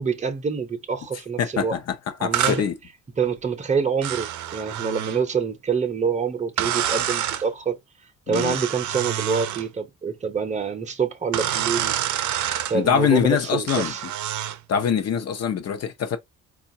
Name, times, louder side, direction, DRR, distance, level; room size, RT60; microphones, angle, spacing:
voice 1, 0.0-1.7 2.2-2.6 3.2-7.8 8.3-11.9 12.7-14.0, right 5 dB, 25° right, 0.7 m, -26 dB
voice 2, 1.4-2.7 8.3-8.6 12.7-14.1 14.7-16.2, left 8 dB, 55° left, 0.8 m, -24 dB
sound 1, 2.3-2.6 4.0-5.2 6.6-7.4 8.3-9.7 11.3-12.8 13.7-14.6, right 11 dB, 70° right, 0.5 m, -27 dB
3.8 x 2.4 x 2.6 m
cardioid pair, 90°, 30 cm